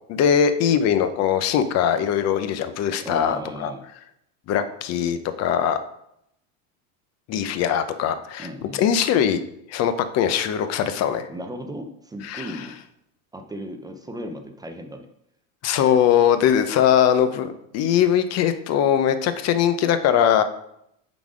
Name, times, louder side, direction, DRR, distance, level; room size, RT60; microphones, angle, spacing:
voice 1, 0.1-3.7 4.5-5.8 7.3-8.5 8.7-9.4 9.7-11.3 12.2-12.5 15.6-20.4, left 9 dB, 40° left, 10 dB, 0.7 m, -21 dB
voice 2, 3.0-3.8 8.4-9.0 11.3-12.8 13.3-15.1, equal, 10° right, 5 dB, 0.5 m, -36 dB
7.3 x 4.0 x 4.9 m, 0.77 s
supercardioid pair, 120°, 41 cm